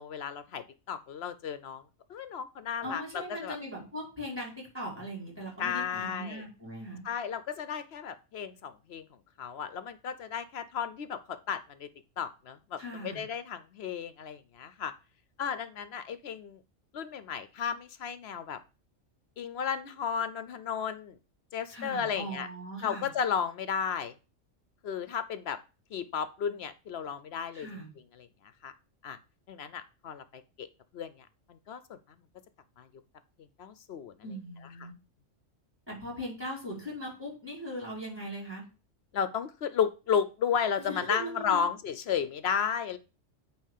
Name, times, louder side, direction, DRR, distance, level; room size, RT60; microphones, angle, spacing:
voice 1, 0.0-1.8 2.1-3.6 5.6-6.4 7.0-9.1 9.4-11.9 12.2-14.9 15.4-16.6 16.9-18.6 19.4-21.2 21.5-22.5 22.8-24.1 24.8-25.6 25.9-27.7 28.2-28.3 28.6-28.7 29.0-29.2 29.5-30.7 30.9-32.0 32.8-32.9 33.6-34.1 34.8-34.9 39.1-43.0, left 7 dB, 65° left, 13 dB, 0.8 m, -33 dB
voice 2, 2.8-7.0 12.8-13.2 21.7-23.1 27.5-27.9 34.2-34.9 35.9-38.6 40.9-41.6, equal, 10° right, -4 dB, 4.8 m, -39 dB
9.0 x 3.0 x 6.5 m, 0.32 s
omnidirectional pair, 1.3 m